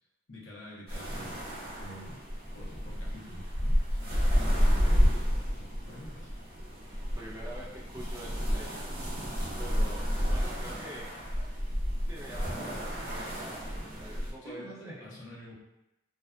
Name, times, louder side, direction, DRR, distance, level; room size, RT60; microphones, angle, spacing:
voice 1, 0.3-1.4 1.8-2.2 2.5-6.3 14.4-15.5, equal, 90° left, -6 dB, 0.8 m, -47 dB
sound 1, 0.9-14.3, equal, 55° right, 0.7 m, -30 dB
voice 2, 7.2-8.8 9.6-11.1 11.4-11.5 12.1-13.7 14.0-15.1, right 1 dB, 15° right, -5 dB, 0.4 m, -45 dB
2.5 x 2.2 x 2.3 m, 0.93 s
head